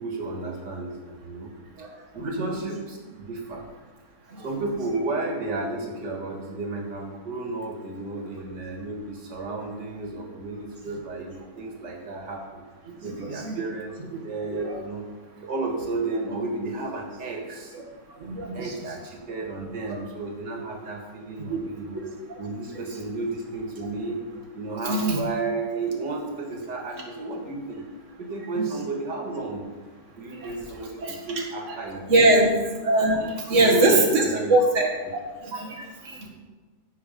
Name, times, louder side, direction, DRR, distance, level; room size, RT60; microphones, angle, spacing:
voice 1, 0.0-1.5 1.8-3.6 4.4-12.6 13.0-14.0 14.2-15.1 15.4-17.7 18.4-22.0 22.4-24.3 24.5-27.9 28.2-29.6 30.2-32.5 33.5-34.7 35.5-35.6, right 3 dB, 85° right, 0 dB, 2.5 m, -32 dB
voice 2, 2.2-2.5 4.3-4.4 12.9-13.6 14.5-14.7 18.2-18.8 21.5-21.6 22.7-22.9 24.8-25.2 28.5-28.7 30.3-30.5 31.0-31.2 31.7-31.8 32.1-32.5 32.8-34.9 35.4-36.3, right 2 dB, 45° right, 0 dB, 2.1 m, -23 dB
15.5 x 6.2 x 5.3 m, 1.3 s
omnidirectional pair, 1.8 m